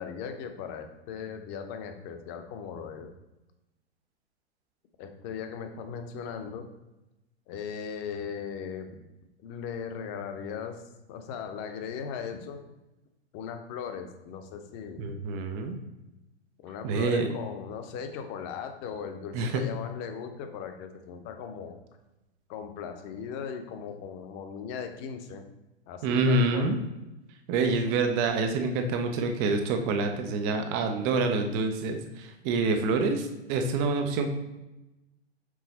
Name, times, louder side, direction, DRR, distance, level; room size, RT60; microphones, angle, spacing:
voice 1, 0.0-3.1 5.0-6.7 7.5-9.0 9.4-12.6 13.3-15.1 16.6-21.8 22.5-25.4 25.9-26.8, left 7 dB, 30° left, 6 dB, 0.7 m, -38 dB
voice 2, 15.0-15.8 16.8-17.3 19.3-19.6 26.0-26.8 27.5-34.3, right 3 dB, 15° right, 6 dB, 0.3 m, -27 dB
6.3 x 3.9 x 4.1 m, 0.99 s
figure-of-eight pair, 105°, 34 cm